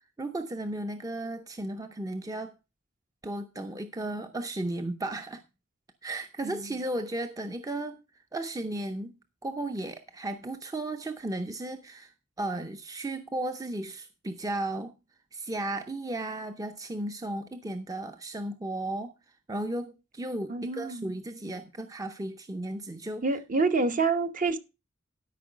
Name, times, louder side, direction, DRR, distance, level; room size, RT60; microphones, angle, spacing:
voice 1, 0.2-2.5 3.2-5.4 6.0-8.0 8.3-14.9 15.3-19.1 19.5-23.2, right 1 dB, 15° right, 0.6 m, -35 dB
voice 2, 6.4-6.8 20.5-21.1 23.2-24.6, right 4 dB, 40° right, 0.9 m, -27 dB
12.5 x 5.4 x 5.1 m
head